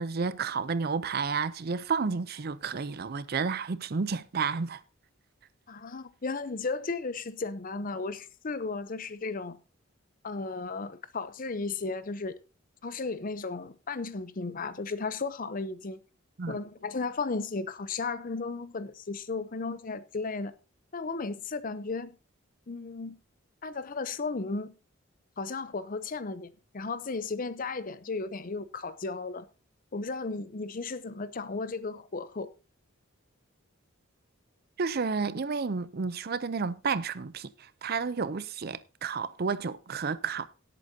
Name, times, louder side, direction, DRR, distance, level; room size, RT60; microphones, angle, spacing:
voice 1, 0.0-4.8 16.4-16.6 34.8-40.5, right 5 dB, 50° right, 0.5 m, -31 dB
voice 2, 5.7-9.6 10.2-12.4 12.8-16.0 16.5-20.5 20.9-22.1 22.7-23.1 23.6-24.7 25.4-29.4 29.9-32.5, left 4 dB, 40° left, 0.7 m, -35 dB
17.5 x 8.4 x 2.7 m
head